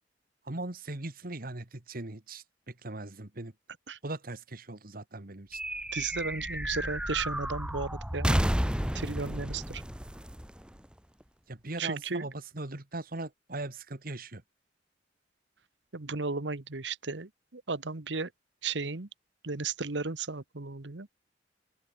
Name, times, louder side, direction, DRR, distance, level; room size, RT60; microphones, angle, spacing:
voice 1, 0.4-3.5 4.0-5.6 11.5-14.4, right 2 dB, 55° right, 2.0 m, -39 dB
sound 1, 5.5-11.2, equal, 5° right, 1.4 m, -32 dB
voice 2, 5.9-8.4 8.9-9.8 11.8-12.3 15.9-18.3 18.6-19.1 19.4-21.1, right 4 dB, 85° right, 1.4 m, -34 dB
open air
head